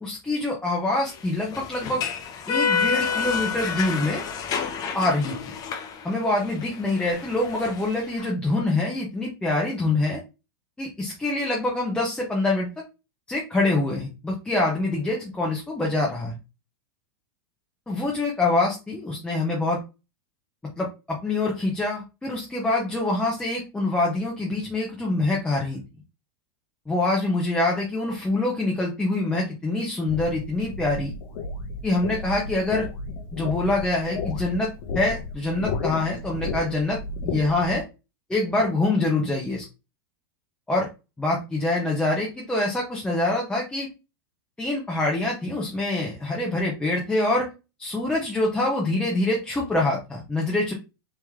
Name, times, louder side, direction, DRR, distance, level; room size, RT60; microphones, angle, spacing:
voice 1, 0.0-2.0 2.5-4.2 4.9-5.3 6.0-10.2 10.8-12.7 13.3-16.4 17.9-19.8 20.8-25.8 26.9-31.1 31.8-32.9 33.3-34.7 34.9-37.0 37.2-37.8 38.3-39.6 40.7-40.9 41.2-43.9 44.6-47.5 47.8-50.7, left 2 dB, 5° left, -3 dB, 1.0 m, -25 dB
sound 1, 1.1-8.3, left 6 dB, 30° left, 0.6 m, -29 dB
sound 2, 30.1-37.8, left 4 dB, 55° left, 0.9 m, -33 dB
3.4 x 2.9 x 3.5 m, 0.28 s
supercardioid pair, 140°, 12 cm